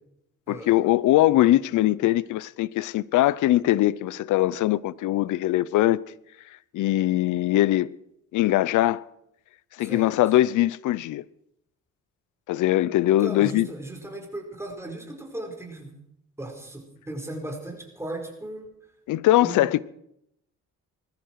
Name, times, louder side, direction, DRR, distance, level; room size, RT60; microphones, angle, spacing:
voice 1, 0.5-6.0 6.7-7.9 8.3-9.0 9.8-11.2 12.5-13.7 19.1-19.8, left 15 dB, 80° left, 0.6 m, -21 dB
voice 2, 9.8-10.1 13.2-15.9 16.4-18.7 19.4-19.7, right 1 dB, 10° right, 4.8 m, -36 dB
20.0 x 14.5 x 4.7 m
cardioid pair, 90°, 30 cm